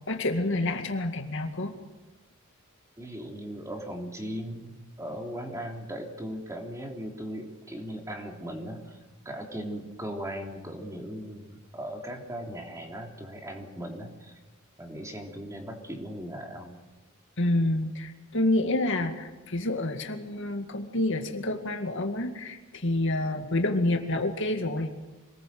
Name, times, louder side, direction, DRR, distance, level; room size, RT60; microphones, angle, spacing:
voice 1, 0.1-1.8 17.4-24.9, left 1 dB, 60° left, 5 dB, 2.2 m, -28 dB
voice 2, 3.0-9.0 9.3-14.3 14.8-16.7, equal, 15° right, 2 dB, 3.4 m, -38 dB
26.0 x 20.0 x 7.8 m, 1.2 s
head